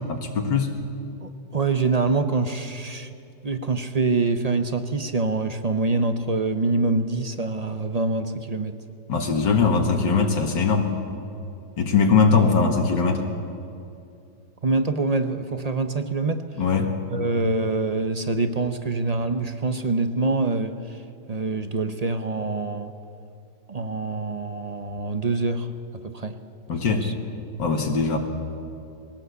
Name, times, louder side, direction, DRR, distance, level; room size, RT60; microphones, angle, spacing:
voice 1, 0.1-0.7 9.1-10.9 11.8-13.3 16.6-17.0 26.7-27.1 27.6-28.2, left 5 dB, 85° left, 2 dB, 2.4 m, -21 dB
voice 2, 1.2-3.1 3.4-8.8 12.7-12.8 14.6-16.5 17.1-21.0 21.3-22.9 23.7-26.4 26.9-27.1, right 3 dB, 35° right, 9 dB, 0.6 m, -25 dB
21.0 x 18.0 x 8.2 m, 2.6 s
omnidirectional pair, 1.9 m